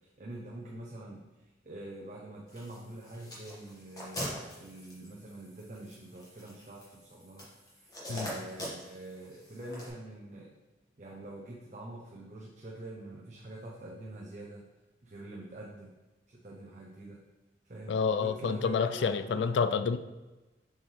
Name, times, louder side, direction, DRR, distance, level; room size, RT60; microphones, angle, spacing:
voice 1, 0.0-10.5 11.0-14.6 15.0-15.9 16.3-17.2 17.6-19.5, right 1 dB, 40° right, -3 dB, 0.7 m, -45 dB
sound 1, 2.5-9.9, equal, 20° left, 1.6 m, -44 dB
voice 2, 17.9-20.0, left 5 dB, 85° left, 11 dB, 0.3 m, -28 dB
7.0 x 4.4 x 3.3 m, 1.1 s
head